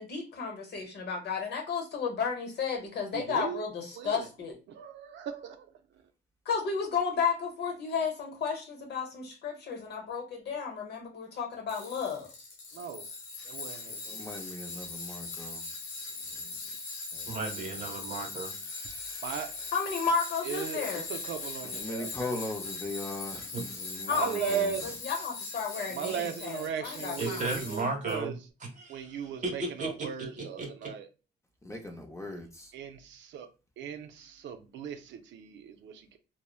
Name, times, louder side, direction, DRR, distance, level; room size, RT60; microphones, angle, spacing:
voice 1, 0.0-4.6 6.4-12.3 19.7-21.1 24.1-24.6 25.0-27.5, left 5 dB, 55° left, 0.9 m, -33 dB
voice 2, 3.1-3.6 3.9-4.3 4.7-5.7 12.7-13.1 13.4-14.0 19.2-19.6 20.4-22.1 24.1-25.0 25.8-28.4 28.9-31.1 32.7-33.5 33.8-36.2, right 7 dB, 70° right, 0.4 m, -37 dB
Tools, 11.7-28.2, left 3 dB, 90° left, 0.7 m, -40 dB
voice 3, 14.0-15.6 16.1-16.6 17.1-17.4 17.7-17.9 18.6-19.8 21.6-24.9 31.6-32.7, left 2 dB, 15° left, 0.6 m, -40 dB
voice 4, 17.3-18.6 23.5-23.6 27.2-28.3 28.8-29.2 29.4-29.9 30.4-30.7, right 3 dB, 40° right, 1.1 m, -34 dB
3.0 x 2.0 x 2.3 m
cardioid pair, 90°, 20 cm